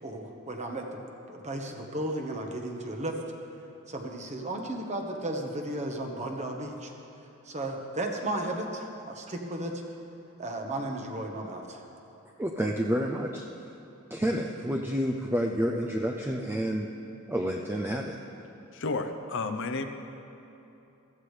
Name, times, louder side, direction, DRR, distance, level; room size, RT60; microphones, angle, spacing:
voice 1, 0.0-1.0 1.3-3.2 3.9-6.9 7.4-9.8 10.4-11.8, right 1 dB, 35° right, 2 dB, 1.2 m, -34 dB
voice 2, 12.4-13.5 14.1-16.9 17.3-18.2, equal, 10° right, 1 dB, 0.5 m, -29 dB
voice 3, 18.7-19.9, left 3 dB, 60° left, 8 dB, 0.7 m, -31 dB
15.0 x 14.5 x 3.3 m, 3.0 s
head